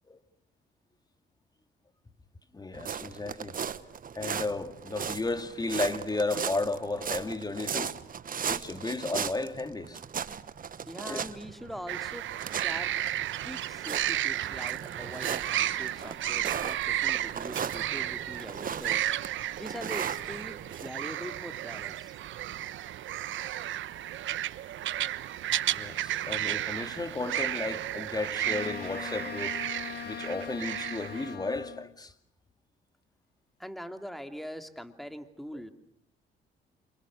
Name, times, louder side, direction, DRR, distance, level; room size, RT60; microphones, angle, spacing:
voice 1, 2.5-3.5 4.1-8.0 8.5-10.0 11.1-11.2 25.7-29.5 30.0-32.1 35.5-35.6, left 3 dB, 20° left, 2.4 m, -33 dB
sound 1, 2.7-20.9, right 7 dB, 45° right, 1.2 m, -37 dB
voice 2, 10.9-12.9 13.4-19.1 19.6-20.6 20.8-22.1 33.6-35.7, equal, ahead, 2.6 m, -42 dB
sound 2, 11.9-31.3, right 13 dB, 75° right, 1.1 m, -33 dB
Wind instrument woodwind instrument, 28.4-32.0, left 10 dB, 55° left, 1.0 m, -41 dB
29.0 x 28.0 x 6.3 m
cardioid pair, 90°, 20 cm